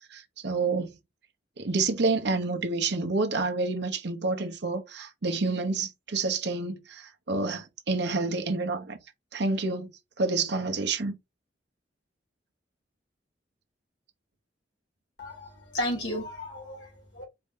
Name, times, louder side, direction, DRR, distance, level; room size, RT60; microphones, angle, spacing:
voice 1, 0.1-0.9 1.6-9.0 9.3-9.9 10.2-11.2, right 3 dB, 65° right, 0.8 m, -28 dB
voice 2, 15.2-17.2, left 1 dB, 75° left, 2.2 m, -34 dB
4.3 x 2.7 x 3.6 m
head